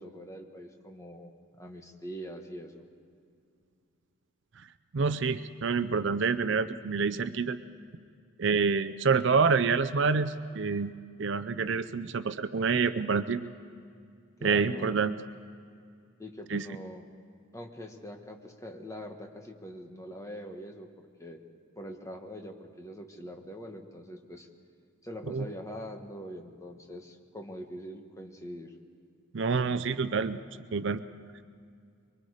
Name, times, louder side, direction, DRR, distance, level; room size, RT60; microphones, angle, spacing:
voice 1, 0.0-2.8 14.4-15.0 16.2-17.0 17.5-21.4 21.8-24.5 25.0-28.7, equal, 15° left, 3 dB, 1.4 m, -43 dB
voice 2, 4.9-7.6 8.4-10.9 11.2-13.4 14.4-15.2 16.5-16.7 25.3-25.5 29.3-30.4 30.7-31.0, right 5 dB, 60° right, 13 dB, 0.5 m, -27 dB
24.0 x 23.5 x 4.9 m, 2.3 s
head